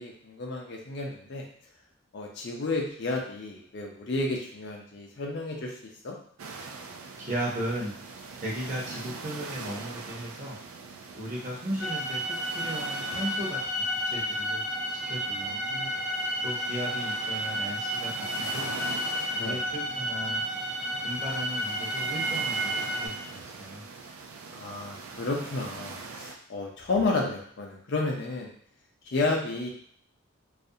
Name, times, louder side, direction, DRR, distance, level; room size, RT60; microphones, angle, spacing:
voice 1, 0.0-1.4 2.1-5.7 6.0-6.2 15.4-16.0 16.4-16.5 19.4-19.6 24.5-28.5 29.1-29.7, left 3 dB, 55° left, 0 dB, 0.5 m, -31 dB
sound 1, 6.4-26.4, right 4 dB, 80° right, 0.3 m, -42 dB
voice 2, 7.2-7.9 8.4-10.6 11.1-13.6 14.1-14.6 15.1-15.6 16.4-18.1 18.4-18.7 19.3-20.4 21.0-23.8, equal, 35° right, -5 dB, 0.7 m, -36 dB
sound 2, 11.8-23.1, equal, 5° right, 0.4 m, -31 dB
2.4 x 2.1 x 2.7 m, 0.62 s
head